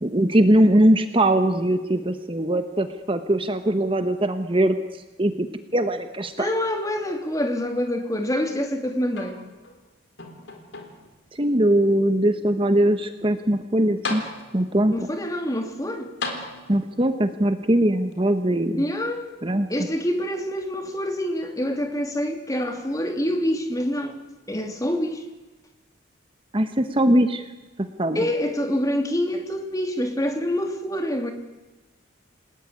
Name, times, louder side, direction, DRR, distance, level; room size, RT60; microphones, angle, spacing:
voice 1, 0.0-4.7 5.2-5.5 5.7-6.5 11.3-14.2 14.5-14.9 16.7-18.8 19.4-19.7 26.5-27.4 28.0-28.2, right 1 dB, 25° right, 8 dB, 1.2 m, -21 dB
voice 2, 6.4-9.4 14.9-16.1 18.8-19.3 19.7-24.2 24.5-25.2 28.1-31.3, equal, 15° left, 5 dB, 2.7 m, -26 dB
sound 1, 9.1-9.8 10.2-11.2 11.9-12.0 13.6-13.7 14.0-14.8 16.2-17.0 18.1-18.2, left 3 dB, 60° left, 3.8 m, -35 dB
28.5 x 19.5 x 9.5 m, 1.1 s
head